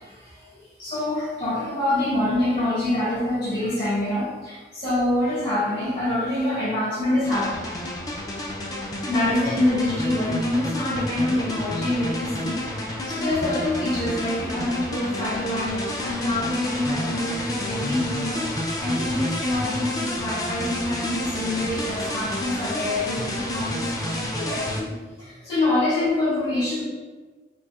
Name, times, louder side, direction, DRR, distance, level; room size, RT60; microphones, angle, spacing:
voice 1, 0.0-7.5 9.1-12.7 13.1-24.9 25.2-26.8, left 1 dB, 65° left, -10 dB, 1.3 m, -26 dB
sound 1, 7.2-24.8, left 1 dB, 20° left, 0.3 m, -30 dB
3.9 x 2.7 x 2.3 m, 1.3 s
head